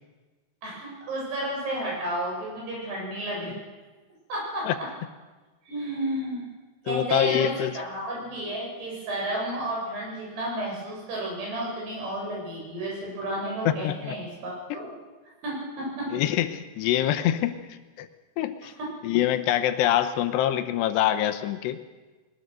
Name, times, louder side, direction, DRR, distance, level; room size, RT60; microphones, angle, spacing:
voice 1, 0.6-3.5 4.3-4.9 5.6-6.5 6.8-14.9 15.4-16.1 18.8-18.9, right 1 dB, 70° right, -3 dB, 9.6 m, -32 dB
voice 2, 6.9-7.7 13.7-14.2 14.7-14.8 16.1-18.1 18.4-18.7 19.0-21.8, left 11 dB, 85° left, 10 dB, 3.0 m, -25 dB
21.5 x 20.5 x 6.6 m, 1.3 s
omnidirectional pair, 4.9 m